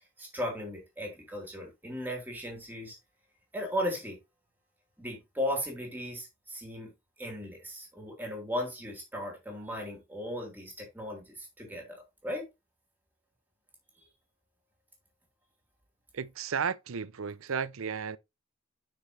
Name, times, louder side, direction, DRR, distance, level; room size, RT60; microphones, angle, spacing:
voice 1, 0.2-3.0 3.5-4.2 5.0-12.5, equal, 10° right, 3.8 m, -36 dB
voice 2, 16.1-18.2, right 6 dB, 80° right, 0.6 m, -33 dB
9.7 x 6.2 x 3.3 m
head